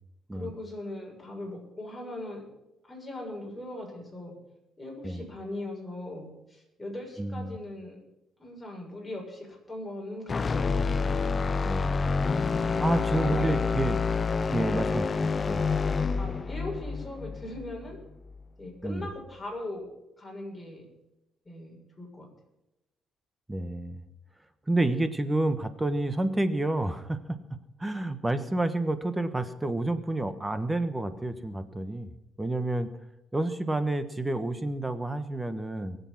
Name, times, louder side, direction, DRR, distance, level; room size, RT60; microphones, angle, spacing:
voice 1, 0.3-2.4 2.8-4.3 4.8-8.0 8.4-10.9 12.3-13.6 16.2-18.0 18.6-19.9 20.2-20.9 21.5-22.3, left 1 dB, 10° left, -1 dB, 6.9 m, -40 dB
voice 2, 7.2-7.6 11.6-12.2 12.8-14.0 14.5-15.6 18.8-19.1 23.5-24.0 24.7-27.4 27.8-32.1 32.4-32.9 33.3-36.0, right 2 dB, 15° right, 11 dB, 1.3 m, -29 dB
sound 1, 10.3-18.4, left 4 dB, 35° left, 0.6 m, -28 dB
22.5 x 8.1 x 6.0 m, 0.92 s
cardioid pair, 90°, 0 cm